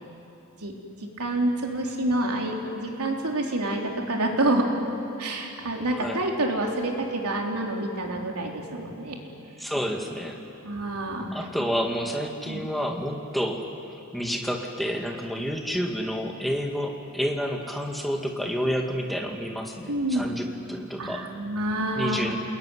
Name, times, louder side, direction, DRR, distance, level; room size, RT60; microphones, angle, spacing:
voice 1, 1.2-4.7 5.2-9.2 10.6-11.4 12.5-12.6 19.9-20.3 21.0-22.4, right 1 dB, 90° right, 1 dB, 3.8 m, -27 dB
voice 2, 5.9-6.2 9.6-10.4 11.3-13.6 14.1-21.2 22.0-22.4, equal, ahead, 1 dB, 2.1 m, -29 dB
28.5 x 20.5 x 9.9 m, 2.8 s
head